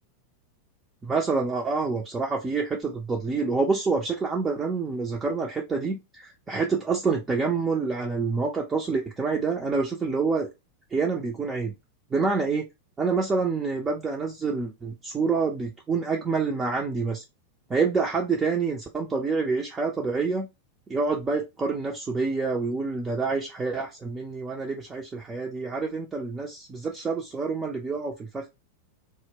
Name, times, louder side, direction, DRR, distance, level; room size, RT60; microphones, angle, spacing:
voice 1, 1.0-10.5 10.9-11.7 12.1-12.6 13.0-17.2 17.7-20.5 20.9-28.5, right 4 dB, 15° right, 0 dB, 0.4 m, -27 dB
2.1 x 2.1 x 3.3 m, 0.23 s
figure-of-eight pair, 90°, 0 cm